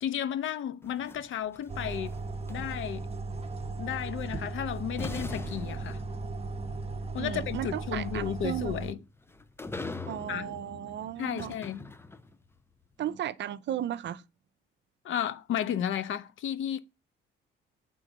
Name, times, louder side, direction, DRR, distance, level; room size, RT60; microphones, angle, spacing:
voice 1, 0.0-2.2 2.5-3.1 3.8-6.0 7.1-9.0 10.3-10.5 11.2-11.9 15.0-16.8, left 9 dB, 70° left, 1.0 m, -33 dB
sound 1, 0.8-3.2 4.4-4.5 5.0-12.5, left 3 dB, 10° left, 0.6 m, -43 dB
sound 2, 1.7-8.9, right 3 dB, 30° right, 1.1 m, -37 dB
voice 2, 7.2-8.7 10.1-11.5 13.0-14.2, right 11 dB, 60° right, 0.6 m, -35 dB
8.0 x 3.8 x 6.5 m
cardioid pair, 100°, 21 cm